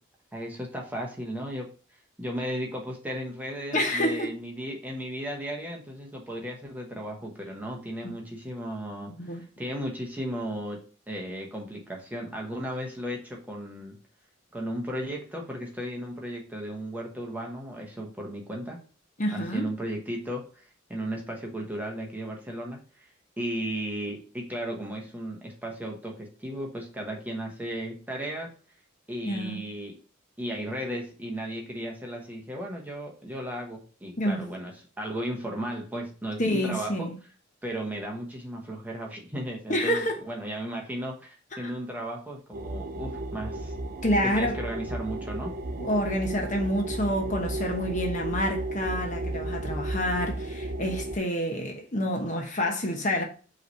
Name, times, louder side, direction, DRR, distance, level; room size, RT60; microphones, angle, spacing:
voice 1, 0.3-1.7 2.2-14.0 14.5-18.8 19.3-23.1 23.4-28.5 29.1-29.9 30.4-34.7 35.0-37.1 37.6-43.7 44.2-45.5, equal, 10° right, 1.1 m, -35 dB
voice 2, 3.7-4.3 8.0-8.1 9.2-9.4 19.2-19.7 29.2-29.6 34.2-34.5 36.4-37.2 39.7-40.2 41.6-41.7 44.0-44.6 45.8-53.2, equal, 35° left, 1.1 m, -28 dB
sound 1, 42.5-51.2, right 2 dB, 45° right, 0.5 m, -33 dB
5.5 x 3.2 x 5.5 m
head